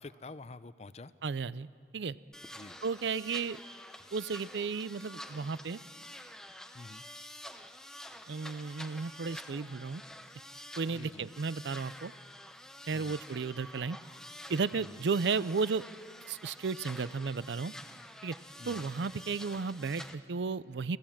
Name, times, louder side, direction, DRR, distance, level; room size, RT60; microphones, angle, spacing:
voice 1, 0.0-1.1 2.5-2.8 6.7-7.0 10.9-11.2 12.9-13.2 14.8-14.9 18.6-18.9, left 3 dB, 40° left, 15 dB, 0.5 m, -48 dB
voice 2, 1.2-1.7 1.9-2.2 2.8-3.6 4.1-5.8 8.3-10.0 10.8-12.1 12.9-14.0 14.5-15.8 16.3-17.7 18.2-18.4 18.7-21.0, right 4 dB, 85° right, 18 dB, 0.5 m, -34 dB
sound 1, 2.3-20.1, left 1 dB, 5° left, 0.7 m, -48 dB
28.5 x 15.5 x 7.4 m, 2.2 s
head